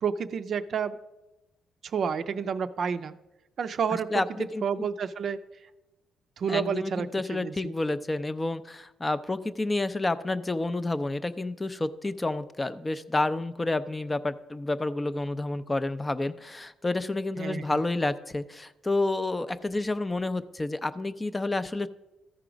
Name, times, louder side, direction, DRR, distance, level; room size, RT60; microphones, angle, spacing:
voice 1, 0.0-1.0 1.8-3.2 3.6-5.4 6.4-7.7 17.4-17.8, right 6 dB, 55° right, 11 dB, 0.4 m, -30 dB
voice 2, 4.1-4.6 6.5-21.9, left 2 dB, 20° left, 13 dB, 0.4 m, -29 dB
13.5 x 4.8 x 5.0 m, 1.0 s
cardioid pair, 90°, 0 cm